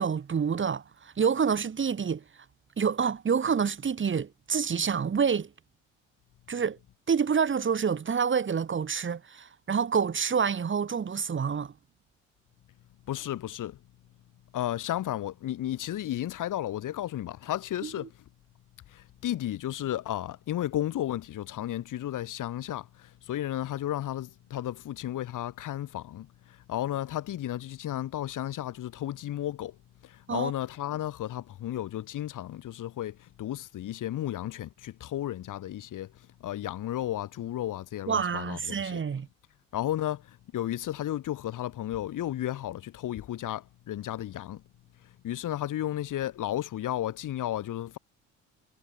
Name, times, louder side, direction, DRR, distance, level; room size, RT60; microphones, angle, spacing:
voice 1, 0.0-2.2 2.8-5.5 6.5-6.8 7.1-11.7 17.8-17.9 30.3-30.5 38.1-39.3, right 6 dB, 30° right, 2.2 m, -27 dB
voice 2, 13.1-13.8 14.5-18.1 18.9-29.8 30.0-36.1 36.4-39.0 39.7-44.6 45.2-48.0, left 12 dB, 55° left, 3.7 m, -33 dB
hypercardioid pair, 60°, 38 cm